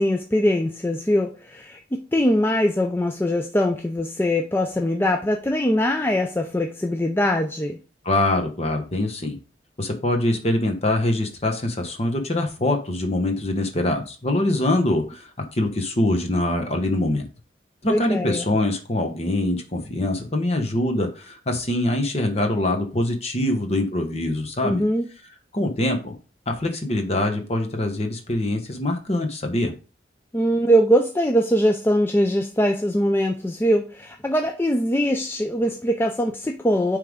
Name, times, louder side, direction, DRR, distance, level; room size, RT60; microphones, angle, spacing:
voice 1, 0.0-7.8 17.9-18.4 24.6-25.1 30.3-37.0, equal, 10° left, 0.4 m, -22 dB
voice 2, 8.0-9.4 9.8-17.2 17.8-24.8 25.5-26.2 26.5-29.7, left 1 dB, 35° left, 1.2 m, -24 dB
9.6 x 3.4 x 3.6 m
head